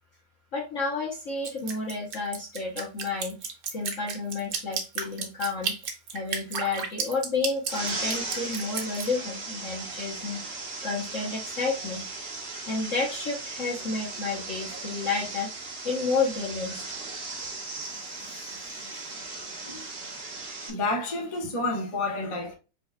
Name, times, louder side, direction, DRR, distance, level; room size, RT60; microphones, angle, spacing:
voice 1, 0.5-10.4 10.8-12.1 12.7-16.8, left 4 dB, 55° left, 0.9 m, -31 dB
Drip, 1.4-9.1, right 6 dB, 60° right, 1.4 m, -32 dB
sound 1, 7.7-20.7, right 3 dB, 35° right, 1.0 m, -37 dB
voice 2, 17.9-19.2 19.6-20.0 20.6-22.6, left 2 dB, 30° left, 0.5 m, -32 dB
5.6 x 3.9 x 2.2 m
omnidirectional pair, 2.4 m